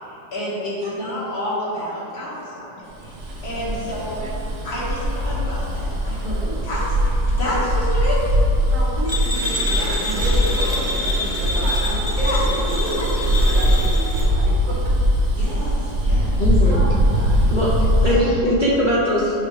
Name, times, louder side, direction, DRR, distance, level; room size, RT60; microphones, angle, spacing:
voice 1, 0.3-2.9 3.4-4.2 4.6-6.4 6.6-8.3 9.8-9.9 10.2-10.3 10.6-11.1 12.2-12.4 12.8-13.1 15.3-16.4 18.0-18.2, left 1 dB, 60° left, -8 dB, 2.3 m, -29 dB
Bus, 3.0-18.2, equal, 65° right, 1.4 m, -21 dB
voice 2, 6.2-6.7 8.7-10.6 11.0-15.0 15.2-15.5 16.7-17.6, right 1 dB, 85° right, -5 dB, 2.0 m, -33 dB
sound 1, 9.1-14.3, left 1 dB, 25° right, 0.6 m, -27 dB
voice 3, 16.4-16.8 17.5-17.7 18.0-19.3, left 1 dB, 45° left, -7 dB, 0.6 m, -20 dB
8.1 x 5.6 x 3.3 m, 2.8 s
omnidirectional pair, 1.9 m